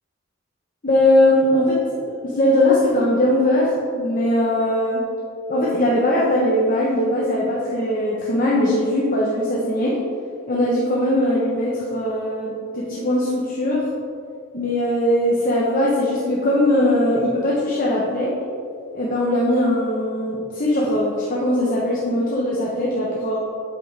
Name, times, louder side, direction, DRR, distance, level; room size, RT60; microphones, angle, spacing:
voice 1, 0.8-1.8 2.1-5.0 5.5-10.0 10.5-13.9 14.5-18.3 18.9-23.4, left 1 dB, 45° left, -5 dB, 1.0 m, -20 dB
8.2 x 7.9 x 3.4 m, 2.5 s
head